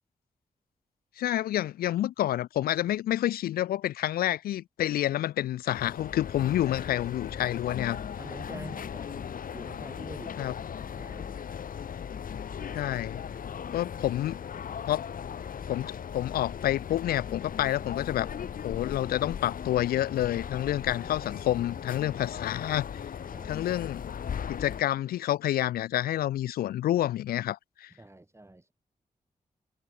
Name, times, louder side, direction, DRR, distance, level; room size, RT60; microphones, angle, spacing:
voice 1, 1.2-8.0 10.4-10.5 12.7-13.2 13.7-14.4 14.9-15.1 15.7-18.3 18.6-22.9 23.4-24.1 24.5-27.9, left 13 dB, 85° left, 0.4 m, -28 dB
sound 1, 5.7-24.8, left 8 dB, 65° left, 1.1 m, -38 dB
voice 2, 8.2-11.4 23.3-23.7 27.9-28.7, right 2 dB, 20° right, 3.7 m, -47 dB
cardioid pair, 50°, 15 cm